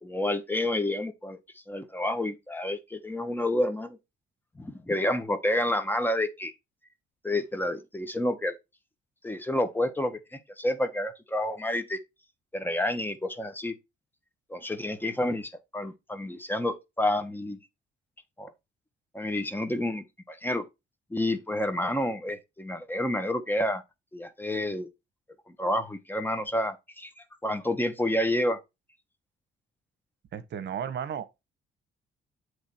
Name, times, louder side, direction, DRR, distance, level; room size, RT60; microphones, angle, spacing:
voice 1, 0.0-1.4 1.7-4.0 4.6-6.5 7.2-8.6 9.2-12.0 12.5-13.7 14.5-17.6 18.4-18.5 19.1-20.6 21.1-23.8 24.1-24.9 25.5-28.6, left 1 dB, 10° left, 0.9 m, -29 dB
voice 2, 30.3-31.5, right 8 dB, 60° right, 0.9 m, -34 dB
8.0 x 3.2 x 4.3 m
cardioid pair, 90°, 20 cm